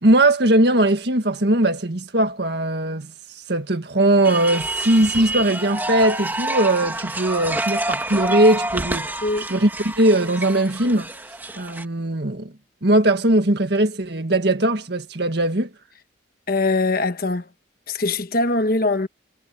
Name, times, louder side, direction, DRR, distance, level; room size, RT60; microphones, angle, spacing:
voice 1, 0.0-3.1 3.5-9.2 9.5-11.1 11.6-12.5 12.8-15.7, right 1 dB, 55° right, 1.8 m, -19 dB
sound 1, 4.2-11.8, right 1 dB, 10° right, 2.2 m, -28 dB
voice 2, 16.5-17.5 17.9-19.1, left 2 dB, 50° left, 1.2 m, -22 dB
head